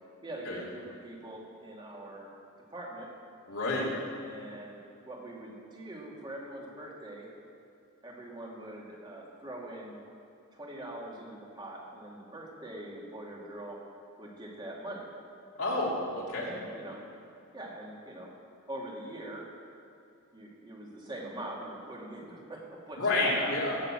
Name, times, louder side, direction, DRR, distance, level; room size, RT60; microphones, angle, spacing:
voice 1, 0.2-2.3 2.7-3.1 4.2-7.3 8.0-10.0 10.5-13.8 14.2-15.1 16.3-17.0 17.5-18.3 18.7-19.5 20.3-23.5, right 1 dB, 25° right, -2 dB, 2.5 m, -43 dB
voice 2, 3.5-3.9 15.6-16.5 23.0-23.8, left 2 dB, 80° left, -6 dB, 3.1 m, -29 dB
17.5 x 6.9 x 7.6 m, 2.6 s
head